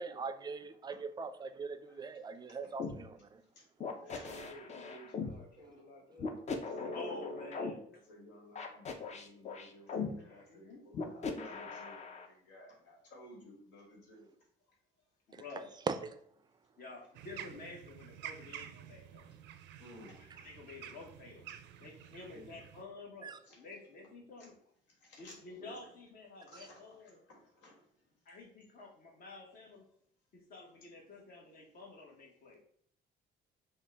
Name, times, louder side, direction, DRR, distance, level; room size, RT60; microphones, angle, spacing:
voice 1, 0.0-3.4 15.9-16.1 23.2-23.3 26.6-26.7, right 4 dB, 25° right, 10 dB, 0.3 m, -40 dB
sound 1, 2.8-3.0 3.8-5.3 6.2-7.7 8.6-10.1 10.9-12.3, left 4 dB, 40° left, 0.6 m, -39 dB
voice 2, 3.9-6.3 6.6-7.4 7.9-14.4 19.3-19.4 19.8-20.2 21.8-21.9 22.3-22.6 23.4-23.6 24.4-24.5 25.0-25.9 26.4-27.8, equal, 80° left, -2 dB, 1.6 m, -55 dB
voice 3, 6.8-7.8 10.2-10.9 15.3-15.8 16.8-19.3 20.2-21.5 21.8-24.6 25.1-27.2 28.2-29.9 30.3-32.6, left 3 dB, 55° left, 1 dB, 1.2 m, -50 dB
sound 2, 17.1-22.8, right 10 dB, 85° right, 0.4 m, -50 dB
5.4 x 2.3 x 3.4 m, 0.63 s
cardioid pair, 125°, 18 cm